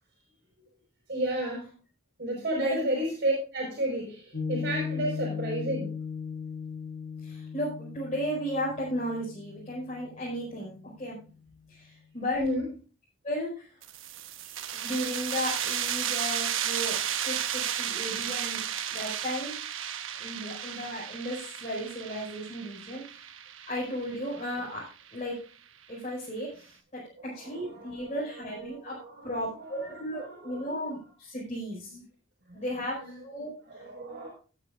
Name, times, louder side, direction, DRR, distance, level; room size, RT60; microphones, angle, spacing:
voice 1, 1.1-1.7 2.2-5.9 12.3-12.7 27.2-28.1 28.6-30.7 33.0-33.1 33.6-34.3, right 1 dB, 50° right, -2 dB, 5.1 m, -32 dB
Piano, 4.3-11.0, left 6 dB, 90° left, 3.9 m, -37 dB
voice 2, 7.2-11.2 11.7-12.4 13.2-13.8 14.4-19.5 20.1-23.2 23.7-25.4 25.9-29.0 29.2-32.0 32.5-33.9, equal, 35° left, -7 dB, 5.2 m, -35 dB
sound 1, 13.8-25.1, right 10 dB, 80° right, 1.1 m, -33 dB
19.0 x 9.0 x 2.5 m, 0.36 s
head